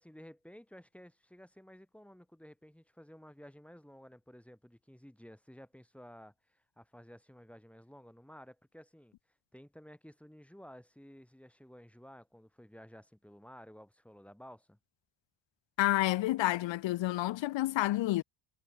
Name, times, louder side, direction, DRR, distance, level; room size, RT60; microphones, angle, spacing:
voice 1, 0.0-9.1 9.5-14.8, equal, 5° left, 4.7 m, -54 dB
voice 2, 15.8-18.2, left 16 dB, 75° left, 0.8 m, -29 dB
cardioid pair, 105°, 46 cm